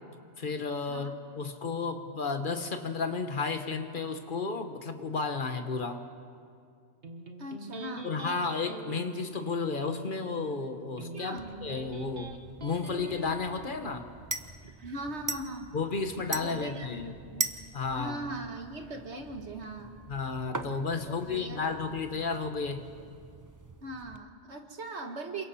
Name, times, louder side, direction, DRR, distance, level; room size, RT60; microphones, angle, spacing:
voice 1, 0.4-6.0 8.0-12.3 12.6-14.0 15.7-17.1 17.7-18.2 20.1-22.8, left 4 dB, 45° left, 7 dB, 1.4 m, -32 dB
Electric guitar, 7.0-14.0, right 2 dB, 55° right, 1.6 m, -45 dB
voice 2, 7.4-8.2 11.1-11.5 14.6-15.7 16.3-17.5 17.9-20.0 21.0-22.2 23.8-25.4, right 2 dB, 70° right, 4 dB, 1.9 m, -40 dB
sound 1, 11.4-24.2, right 3 dB, 20° right, 0.6 m, -42 dB
27.5 x 23.5 x 4.3 m, 2.2 s
omnidirectional pair, 1.2 m